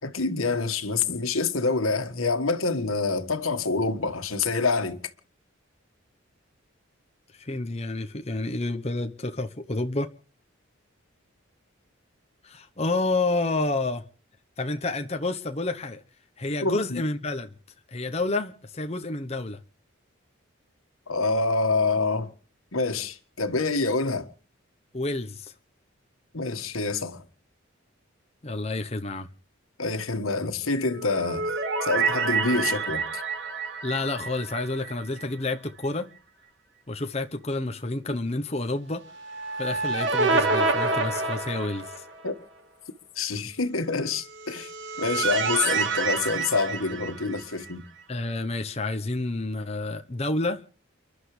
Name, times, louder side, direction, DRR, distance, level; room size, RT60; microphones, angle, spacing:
voice 1, 0.0-5.0 16.6-17.0 21.1-22.3 22.7-24.3 26.3-27.2 29.8-31.5 31.8-33.2 42.2-42.3 43.1-44.7 45.0-47.8, left 3 dB, 90° left, 1.8 m, -26 dB
voice 2, 7.4-10.1 12.4-14.0 14.6-16.0 16.4-17.5 17.9-19.6 24.9-25.5 28.4-29.3 33.8-36.1 36.9-39.0 39.6-42.1 48.1-50.6, left 2 dB, 30° left, 1.0 m, -29 dB
sound 1, 30.9-35.2 35.5-35.6 39.1-42.3 44.3-47.7, right 4 dB, 60° right, 1.9 m, -28 dB
30.0 x 11.5 x 3.4 m
head